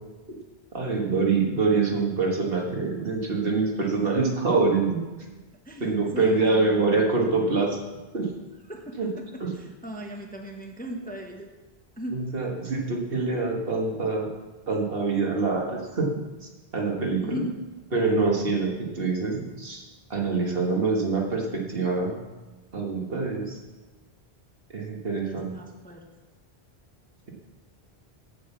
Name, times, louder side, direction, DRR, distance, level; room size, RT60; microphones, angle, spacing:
voice 1, 0.7-5.0 5.8-7.8 8.1-8.3 9.0-9.1 9.4-9.5 12.1-14.3 14.7-16.2 16.7-17.4 17.9-19.8 20.1-22.2 22.7-23.6 24.7-25.5, right 3 dB, 65° right, 0 dB, 1.7 m, -25 dB
voice 2, 5.7-7.1 8.7-11.5 12.0-12.2 17.2-17.6 25.2-26.0, equal, 10° left, 3 dB, 0.8 m, -37 dB
7.8 x 7.8 x 6.9 m, 1.2 s
omnidirectional pair, 1.1 m